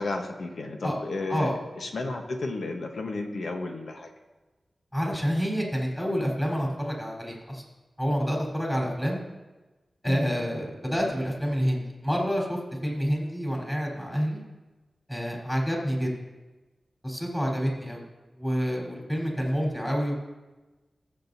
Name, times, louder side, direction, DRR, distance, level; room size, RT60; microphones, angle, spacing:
voice 1, 0.0-4.1 10.0-10.3, left 2 dB, 80° left, 3 dB, 1.1 m, -33 dB
voice 2, 4.9-7.6 8.0-9.2 10.0-14.4 15.1-16.1 17.0-18.0 18.4-20.1, equal, 10° left, -3 dB, 4.1 m, -28 dB
19.5 x 7.7 x 2.8 m, 1.2 s
cardioid pair, 60°, 0 cm